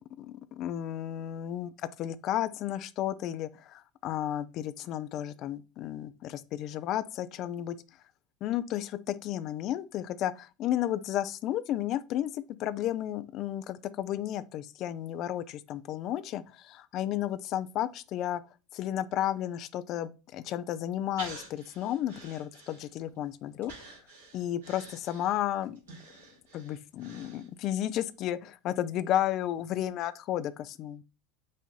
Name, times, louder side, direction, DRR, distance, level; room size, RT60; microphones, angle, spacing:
voice 1, 0.2-7.8 8.4-18.4 18.7-24.0 24.3-25.8 26.5-31.0, left 12 dB, 50° left, 0.4 m, -33 dB
Breathing, 21.2-23.2 23.6-27.8 28.2-28.3, right 3 dB, 75° right, 2.1 m, -48 dB
5.4 x 2.6 x 3.7 m
hypercardioid pair, 80°, 0 cm